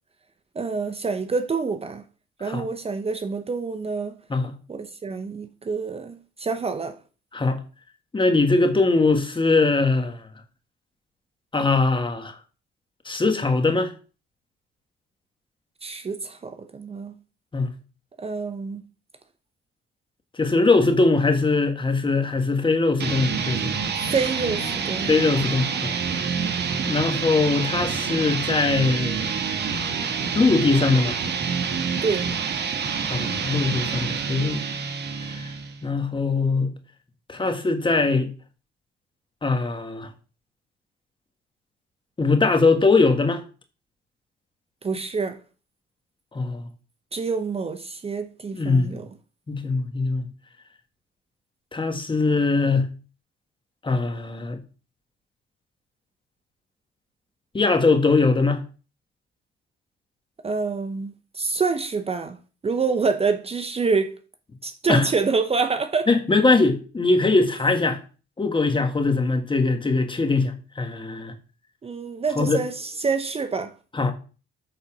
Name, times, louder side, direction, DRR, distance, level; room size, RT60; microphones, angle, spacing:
voice 1, 0.5-2.0 2.4-4.2 4.7-7.0 15.8-17.1 18.2-18.8 24.0-25.2 32.0-32.3 44.8-45.4 47.1-49.1 60.4-62.4 62.6-64.2 64.6-66.1 71.8-73.7, right 4 dB, 30° right, 0.8 m, -27 dB
voice 2, 8.1-10.2 11.5-12.4 13.0-13.9 17.5-17.7 20.4-23.7 25.1-26.0 26.9-29.3 30.3-31.2 33.1-34.7 35.3-35.5 35.8-36.7 37.3-38.3 39.4-40.1 42.2-43.4 46.3-46.7 48.5-49.0 49.5-50.3 51.7-52.9 53.8-54.6 57.5-58.6 64.9-65.1 66.1-68.0 68.4-71.3 72.4-72.6 73.9-74.1, left 3 dB, 25° left, 1.6 m, -21 dB
sound 1, 23.0-35.8, right 6 dB, 60° right, 1.2 m, -27 dB
8.7 x 4.1 x 6.1 m
cardioid pair, 90°, 20 cm